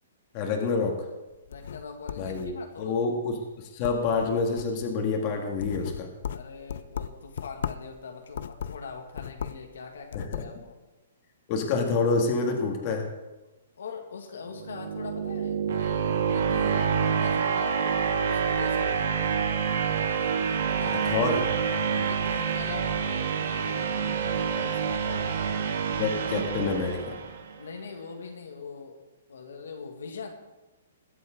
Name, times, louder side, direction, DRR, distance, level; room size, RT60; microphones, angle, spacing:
voice 1, 0.3-1.0 2.2-6.1 10.1-10.4 11.5-13.1 21.1-21.4 26.0-27.2, left 4 dB, 30° left, 2 dB, 2.0 m, -27 dB
sound 1, 1.3-2.9 3.3-3.5 3.8-4.9 5.3-7.9 8.3-9.7 10.0-10.5, left 8 dB, 60° left, 0.5 m, -37 dB
voice 2, 1.5-3.0 6.3-10.8 13.8-19.2 20.7-21.1 21.8-25.4 27.6-29.0 29.3-30.3, left 5 dB, 85° left, 3 dB, 2.0 m, -42 dB
sound 2, 14.5-27.6, right 6 dB, 60° right, 1.6 m, -27 dB
21.5 x 7.8 x 3.8 m, 1.1 s
hypercardioid pair, 160°, 0 cm